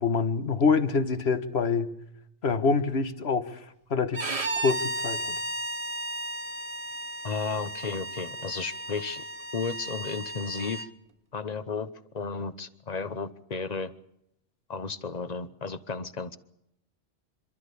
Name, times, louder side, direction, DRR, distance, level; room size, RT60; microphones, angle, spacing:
voice 1, 0.0-1.9 2.4-3.6 3.9-4.2 4.5-5.3, left 4 dB, 60° left, 11 dB, 1.6 m, -25 dB
Bowed string instrument, 4.1-10.9, right 1 dB, 30° right, 1.1 m, -34 dB
voice 2, 7.2-9.2 9.5-10.9 11.3-13.9 14.7-16.4, left 4 dB, 35° left, 14 dB, 1.1 m, -33 dB
27.5 x 13.5 x 8.5 m, 0.79 s
omnidirectional pair, 1.2 m